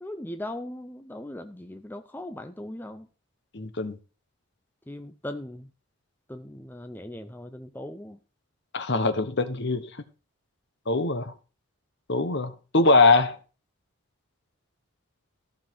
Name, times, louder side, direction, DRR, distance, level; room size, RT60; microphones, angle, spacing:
voice 1, 0.0-3.1 4.9-5.7 6.3-8.2, left 1 dB, 10° left, 0.5 m, -39 dB
voice 2, 3.5-4.0 8.7-9.9 10.9-11.3 12.1-13.4, left 3 dB, 50° left, 1.1 m, -22 dB
14.0 x 5.8 x 4.5 m
head